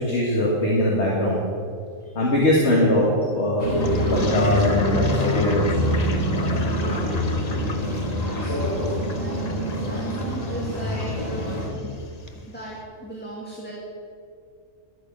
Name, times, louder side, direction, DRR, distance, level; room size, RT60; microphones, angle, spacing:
voice 1, 0.0-1.4 2.2-3.7 4.0-5.9 8.4-8.6, left 1 dB, 60° left, -4 dB, 2.1 m, -21 dB
sound 1, 3.6-11.7, equal, 85° left, 3.6 m, -25 dB
Toilet flush, 3.8-12.4, left 3 dB, 35° left, 0.9 m, -37 dB
voice 2, 6.7-11.9 12.5-13.7, right 1 dB, 10° left, -5 dB, 2.0 m, -38 dB
11.5 x 9.5 x 7.3 m, 2.3 s
omnidirectional pair, 1.3 m